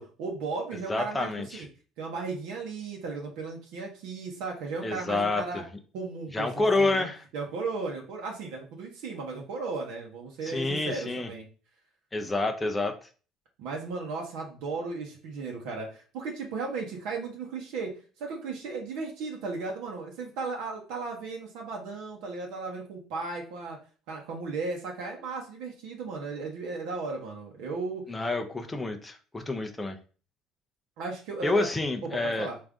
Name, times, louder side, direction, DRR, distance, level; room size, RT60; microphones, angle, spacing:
voice 1, 0.0-1.7 2.0-5.6 5.9-7.1 7.3-11.5 13.6-17.9 18.2-23.8 24.1-28.1 31.0-31.7 32.1-32.6, right 4 dB, 80° right, 0 dB, 0.9 m, -35 dB
voice 2, 0.9-1.6 4.8-5.6 6.3-7.2 10.4-11.3 12.1-13.1 28.1-30.0 31.4-32.5, left 2 dB, 15° left, 5 dB, 0.5 m, -28 dB
3.7 x 2.6 x 3.5 m, 0.38 s
cardioid pair, 130°, 0 cm